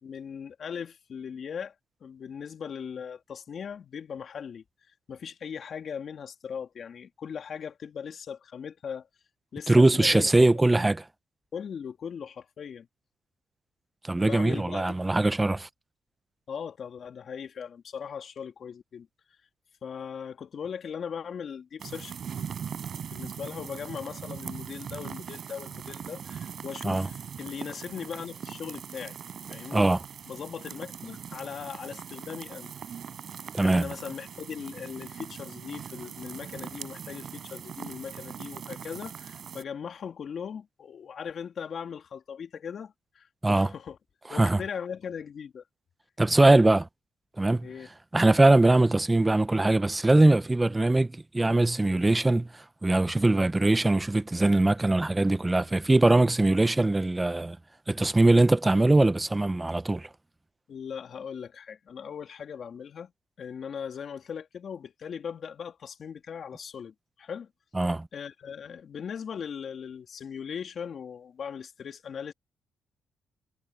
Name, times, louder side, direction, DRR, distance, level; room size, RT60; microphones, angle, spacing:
voice 1, 0.0-1.7 2.0-4.6 5.1-9.1 9.5-10.3 11.5-12.9 14.1-15.1 16.5-19.1 19.8-22.5 23.1-29.2 29.5-29.9 30.2-32.7 33.6-44.0 44.3-45.6 47.6-47.9 60.7-63.1 63.4-67.5 68.1-72.3, left 7 dB, 55° left, 2.9 m, -39 dB
voice 2, 9.7-11.0 14.0-15.7 26.8-27.1 29.7-30.0 33.5-33.9 43.4-43.7 44.3-44.6 46.2-46.9 47.4-47.7 48.1-57.6 57.9-60.1 67.7-68.1, right 2 dB, 15° right, 0.7 m, -22 dB
sound 1, 21.8-39.6, right 8 dB, 55° right, 5.8 m, -41 dB
cardioid pair, 90°, 0 cm